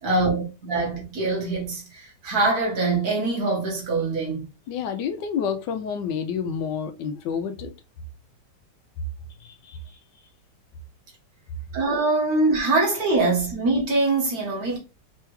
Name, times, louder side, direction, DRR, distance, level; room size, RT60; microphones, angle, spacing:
voice 1, 0.0-4.5 11.7-14.8, right 3 dB, 55° right, 2.0 m, -23 dB
voice 2, 4.7-7.7 9.4-9.8, left 7 dB, 80° left, 1.3 m, -29 dB
4.8 x 3.4 x 3.1 m
omnidirectional pair, 1.9 m